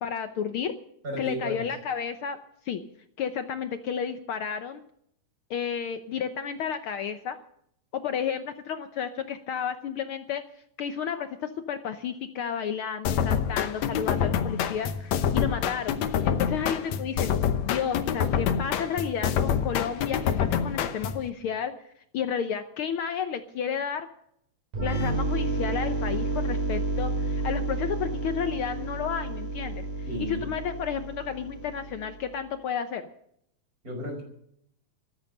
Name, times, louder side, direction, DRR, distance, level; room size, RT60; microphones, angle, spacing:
voice 1, 0.0-0.7 1.2-2.4 2.6-2.8 3.2-4.8 5.5-7.4 7.9-10.4 10.8-16.0 16.2-17.3 17.6-21.7 22.1-24.1 24.8-33.1, left 7 dB, 90° left, 9 dB, 1.1 m, -32 dB
voice 2, 1.0-1.6 30.1-30.5 33.8-34.2, equal, 25° right, 2 dB, 5.7 m, -33 dB
sound 1, 13.1-21.3, left 8 dB, 70° left, 2.1 m, -27 dB
sound 2, 24.7-32.3, right 2 dB, 85° right, 7.9 m, -31 dB
14.0 x 13.0 x 6.5 m, 0.70 s
omnidirectional pair, 3.6 m